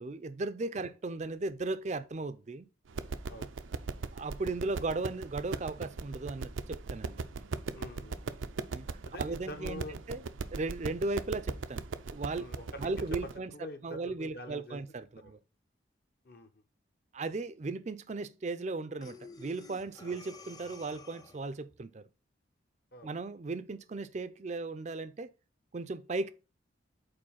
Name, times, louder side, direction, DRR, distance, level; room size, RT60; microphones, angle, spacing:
voice 1, 0.0-2.7 4.1-7.5 8.7-8.9 9.2-9.8 10.1-10.2 10.5-12.5 12.8-13.5 13.8-15.4 17.1-22.0 23.0-25.3 25.7-26.3, right 3 dB, 35° right, 0.4 m, -36 dB
sound 1, 2.9-13.4, right 4 dB, 85° right, 0.5 m, -39 dB
voice 2, 7.7-8.5 9.0-10.0 12.3-14.8 15.2-15.4 16.2-16.6 20.0-20.2 22.9-23.1, left 1 dB, 50° left, 0.9 m, -46 dB
Breathing, 19.0-21.6, left 3 dB, 20° left, 0.5 m, -51 dB
5.2 x 4.3 x 5.6 m
head